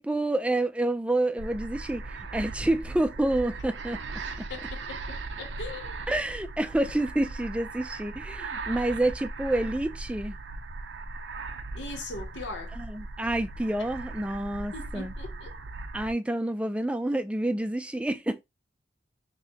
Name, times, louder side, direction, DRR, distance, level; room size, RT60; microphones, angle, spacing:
voice 1, 0.0-4.0 4.4-4.5 6.1-10.4 12.8-15.1 15.9-18.4, right 1 dB, 5° right, 0.3 m, -28 dB
sound 1, 1.4-16.1, right 3 dB, 80° right, 0.6 m, -38 dB
voice 2, 4.5-6.0 11.7-12.8 14.7-15.6, left 3 dB, 75° left, 0.8 m, -40 dB
3.9 x 3.0 x 2.8 m
head